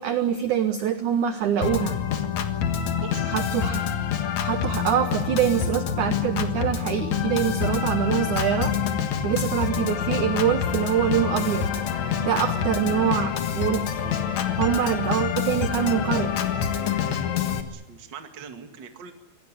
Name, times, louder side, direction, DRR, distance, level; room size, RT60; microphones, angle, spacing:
voice 1, 0.0-2.0 3.3-3.9 4.4-8.7 9.2-11.7 12.2-14.0 14.6-16.3, right 9 dB, 70° right, 9 dB, 1.9 m, -25 dB
Organ, 1.6-17.6, left 8 dB, 55° left, 2.3 m, -26 dB
voice 2, 3.0-3.3 17.7-19.1, right 7 dB, 40° right, 6 dB, 1.7 m, -41 dB
25.5 x 18.5 x 9.8 m, 0.84 s
omnidirectional pair, 4.9 m